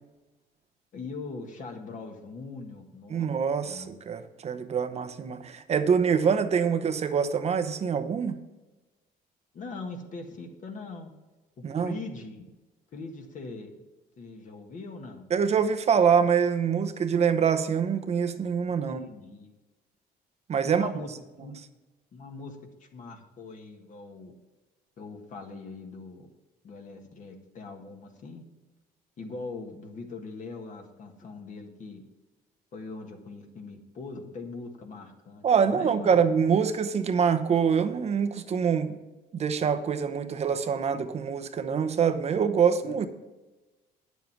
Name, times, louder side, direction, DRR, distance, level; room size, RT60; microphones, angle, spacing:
voice 1, 0.9-3.3 3.6-3.9 9.5-11.1 11.6-12.4 12.9-13.7 14.2-15.3 18.8-19.5 20.6-21.1 21.4-21.5 22.1-24.3 25.0-26.3 26.6-28.4 29.2-32.0 32.7-36.2 40.3-40.4 42.8-43.0, left 3 dB, 50° left, 3 dB, 1.6 m, -41 dB
voice 2, 3.1-8.4 11.6-12.0 15.3-19.0 20.5-20.9 35.4-39.0 39.3-43.1, right 6 dB, 40° right, 10 dB, 0.8 m, -25 dB
9.3 x 7.2 x 5.9 m, 1.1 s
cardioid pair, 110°, 17 cm